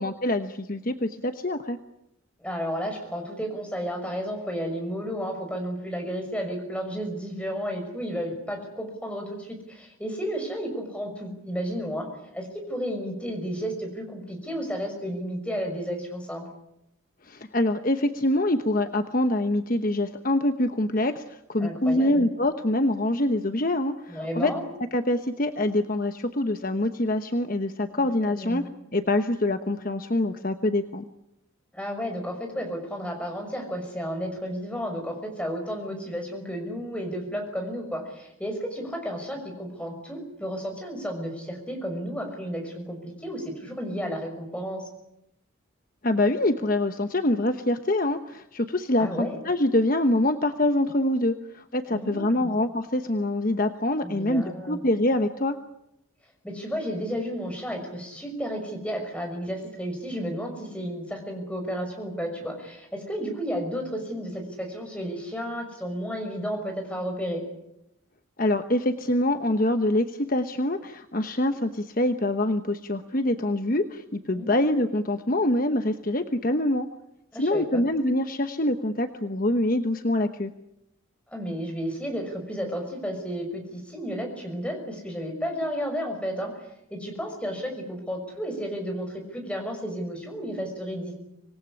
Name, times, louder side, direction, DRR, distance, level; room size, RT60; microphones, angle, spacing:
voice 1, 0.0-1.8 17.2-24.5 24.9-28.6 28.9-31.0 46.0-55.6 68.4-76.9 77.3-80.5, left 1 dB, 40° left, 8 dB, 1.1 m, -25 dB
voice 2, 2.4-12.1 12.3-16.4 21.6-22.2 24.1-24.6 28.0-28.7 31.7-44.9 49.0-49.4 51.9-52.5 54.0-54.8 56.4-67.4 74.3-74.7 77.3-77.8 81.3-91.1, equal, 5° left, 3 dB, 5.9 m, -32 dB
26.0 x 19.5 x 9.9 m, 0.83 s
head